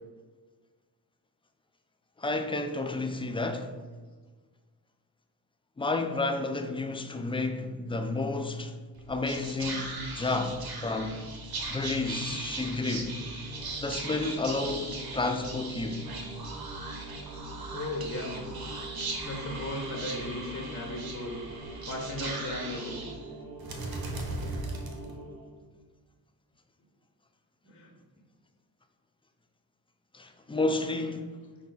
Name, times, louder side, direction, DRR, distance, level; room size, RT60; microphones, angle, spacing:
voice 1, 2.2-3.7 5.8-8.7 9.1-11.3 11.7-13.2 13.8-16.1 30.1-31.3, left 2 dB, 15° left, 0.4 m, -31 dB
Whispering, 8.9-25.5, right 2 dB, 55° right, 1.0 m, -38 dB
voice 2, 17.7-18.4 19.2-21.4 21.9-23.0 27.6-27.9, left 1 dB, 30° left, 1.1 m, -36 dB
5.5 x 2.3 x 3.9 m
supercardioid pair, 55°, 44 cm